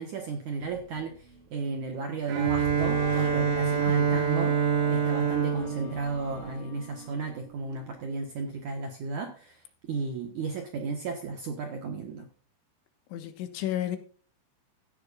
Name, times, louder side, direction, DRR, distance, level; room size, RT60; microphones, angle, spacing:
voice 1, 0.0-4.5 4.9-12.3, right 4 dB, 65° right, 2.0 m, -34 dB
sound 1, 0.6-6.5, right 2 dB, 50° right, 5.8 m, -43 dB
Bowed string instrument, 2.3-7.1, right 7 dB, 90° right, 4.2 m, -26 dB
Bowed string instrument 2, 2.5-7.5, left 4 dB, 35° left, 3.2 m, -46 dB
voice 2, 3.9-4.5 13.1-14.0, left 12 dB, 85° left, 3.7 m, -34 dB
16.0 x 11.0 x 2.5 m
omnidirectional pair, 5.4 m